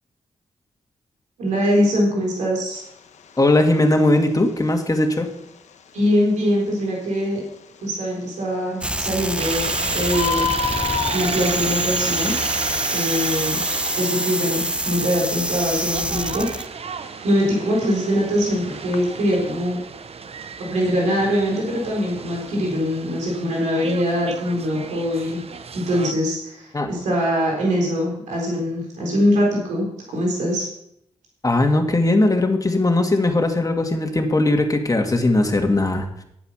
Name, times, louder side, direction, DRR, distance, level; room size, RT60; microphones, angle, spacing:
voice 1, 1.4-2.8 5.9-7.4 7.8-10.5 11.1-12.3 12.9-13.6 14.0-16.7 17.2-19.8 20.7-25.4 25.7-30.7, equal, 85° right, -2 dB, 3.9 m, -22 dB
Bird, 2.7-19.1, left 7 dB, 75° left, 1.0 m, -34 dB
voice 2, 3.4-5.3 26.7-26.9 31.4-36.1, left 2 dB, 30° left, 4 dB, 2.4 m, -19 dB
sound 1, 8.8-16.7, right 1 dB, 10° right, 0.8 m, -26 dB
sound 2, 9.4-26.1, right 6 dB, 55° right, 0.9 m, -33 dB
10.5 x 8.4 x 5.8 m, 0.76 s
supercardioid pair, 45°, 12 cm